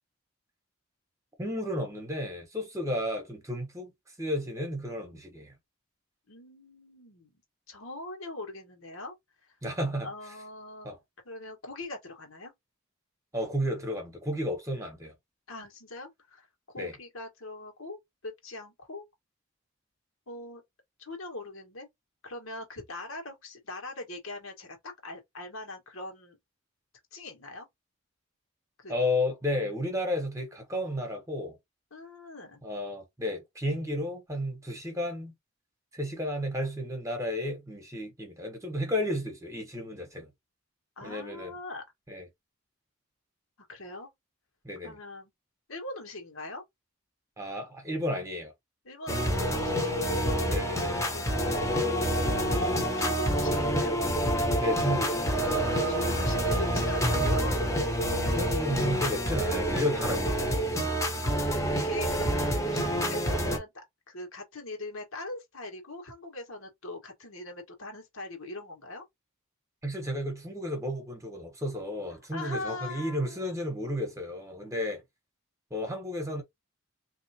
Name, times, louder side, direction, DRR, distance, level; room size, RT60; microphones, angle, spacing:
voice 1, 1.4-3.9 4.2-5.5 9.6-10.1 10.8-11.0 13.3-15.1 16.8-16.9 28.9-31.6 32.6-35.3 35.9-40.3 41.0-41.5 42.1-42.3 44.6-45.0 47.4-48.5 50.5-51.0 54.6-55.5 58.3-60.2 69.8-75.0 75.7-76.4, left 1 dB, 15° right, 1.1 m, -32 dB
voice 2, 6.3-7.3 7.7-9.1 9.4-9.6 10.0-10.9 11.2-12.5 15.5-16.5 16.7-19.0 20.3-20.6 21.0-21.9 22.2-26.4 27.1-27.7 28.8-28.9 31.9-32.6 41.0-41.8 43.7-44.1 44.8-45.3 45.7-46.6 48.8-50.3 50.6-52.1 53.0-54.0 55.9-57.6 61.2-61.5 61.7-69.0 72.3-73.5, left 2 dB, 80° left, 1.5 m, -42 dB
sound 1, 49.1-63.6, equal, 15° left, 0.9 m, -27 dB
3.7 x 2.8 x 2.8 m
head